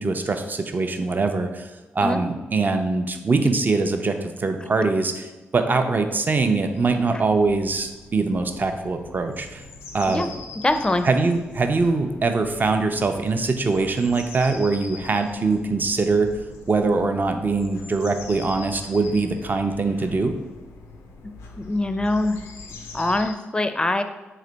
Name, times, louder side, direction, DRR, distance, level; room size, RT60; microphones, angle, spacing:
voice 1, 0.0-1.7 1.9-9.6 9.9-10.3 11.0-16.3 16.7-20.3, right 3 dB, 40° right, 6 dB, 0.5 m, -23 dB
sound 1, 6.7-23.3, left 3 dB, 90° left, 0.4 m, -43 dB
voice 2, 10.6-11.1 21.7-22.4 22.9-24.0, left 2 dB, 20° left, 8 dB, 0.4 m, -23 dB
3.2 x 3.0 x 3.9 m, 1.1 s
supercardioid pair, 45°, 5 cm